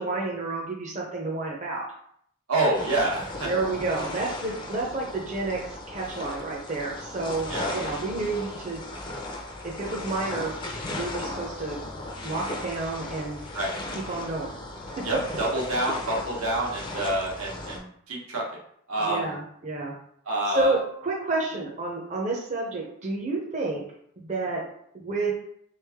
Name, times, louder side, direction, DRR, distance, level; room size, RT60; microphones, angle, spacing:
voice 1, 0.0-1.8 3.4-8.8 9.6-10.5 10.9-11.8 12.2-13.4 14.1-14.6 15.0-15.1 19.0-19.9 20.5-23.8 24.2-24.6 24.9-25.3, right 3 dB, 35° right, -2 dB, 0.6 m, -30 dB
voice 2, 2.5-3.5 7.5-7.8 13.5-13.7 15.0-18.4 18.9-19.3 20.2-20.8, right 1 dB, 85° right, -3 dB, 1.3 m, -27 dB
sound 1, 2.7-17.8, left 2 dB, 20° left, 0.5 m, -36 dB
3.5 x 3.2 x 3.5 m, 0.68 s
head